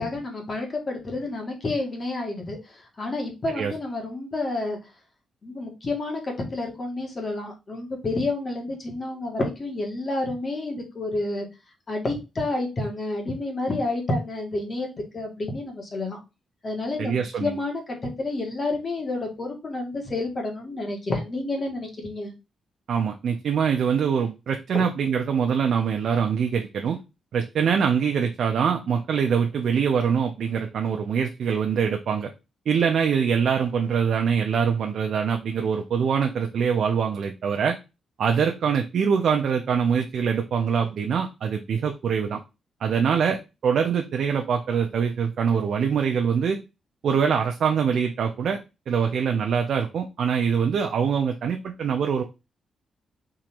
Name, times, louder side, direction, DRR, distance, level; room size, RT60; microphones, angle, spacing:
voice 1, 0.0-4.8 5.4-11.5 11.9-14.9 15.1-16.2 16.6-22.3 24.7-24.8, left 2 dB, 35° left, 1 dB, 1.7 m, -29 dB
voice 2, 17.0-17.6 22.9-27.0 27.3-32.3 32.7-37.8 38.2-42.4 42.8-46.6 47.0-48.6 48.9-52.2, right 7 dB, 70° right, 4 dB, 0.6 m, -24 dB
3.7 x 3.0 x 4.5 m, 0.27 s
cardioid pair, 105°, 0 cm